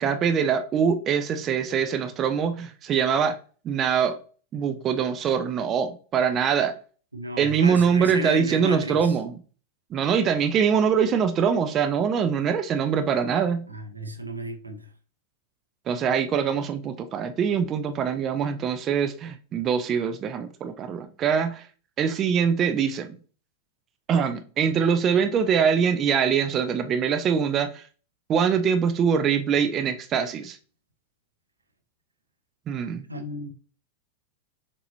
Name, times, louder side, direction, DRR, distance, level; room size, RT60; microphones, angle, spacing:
voice 1, 0.0-3.4 3.6-4.1 4.5-6.7 7.4-9.3 9.9-13.7 15.9-21.6 22.0-23.2 24.1-27.8 28.3-30.6 32.7-33.0, right 7 dB, 30° right, 0.5 m, -23 dB
voice 2, 7.1-9.2 13.7-14.9 33.1-33.5, right 1 dB, 80° right, 0.8 m, -34 dB
6.4 x 2.7 x 2.8 m
figure-of-eight pair, 90°, 0 cm